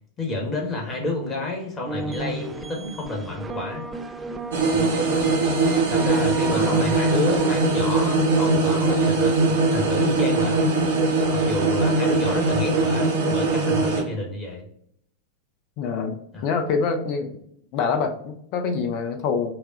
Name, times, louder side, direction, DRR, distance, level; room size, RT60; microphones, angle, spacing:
voice 1, 0.2-3.8 4.7-5.3 5.9-10.6 11.3-14.6 16.3-16.5, left 2 dB, 25° left, 0 dB, 1.4 m, -29 dB
sound 1, 1.9-7.6, right 3 dB, 15° right, 0.3 m, -34 dB
sound 2, 4.5-14.0, right 3 dB, 65° right, 1.1 m, -21 dB
voice 2, 15.8-16.2 16.4-17.4 17.7-19.5, left 5 dB, 40° left, 7 dB, 0.7 m, -25 dB
5.6 x 2.4 x 2.5 m, 0.68 s
figure-of-eight pair, 90°, 0 cm